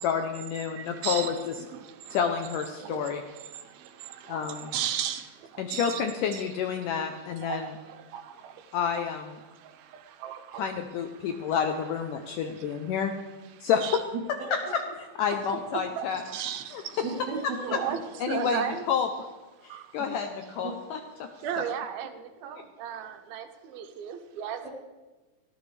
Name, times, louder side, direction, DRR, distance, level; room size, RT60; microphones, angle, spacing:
voice 1, 0.0-1.3 2.1-3.2 4.3-4.7 5.6-7.7 8.7-9.4 10.6-13.1 13.6-14.0 14.5-14.6 15.2-16.2 16.7-16.8 18.2-19.1 19.6-21.3, left 7 dB, 75° left, 5 dB, 2.2 m, -29 dB
voice 2, 0.7-1.4 1.7-2.2 2.8-6.0 6.3-6.4 6.8-6.9 7.4-9.0 9.4-10.7 11.2-11.6 12.2-12.8 13.5-14.0 15.7-17.1 17.6-18.0 18.3-18.9 19.7-19.9 21.4-24.6, right 9 dB, 90° right, 7 dB, 2.9 m, -36 dB
voice 3, 14.1-14.5 16.6-16.7 17.0-18.0 20.0-20.1 20.6-20.8 22.4-22.5 24.6-24.7, right 3 dB, 55° right, -5 dB, 4.4 m, -36 dB
18.5 x 16.0 x 3.4 m, 1.2 s
omnidirectional pair, 4.1 m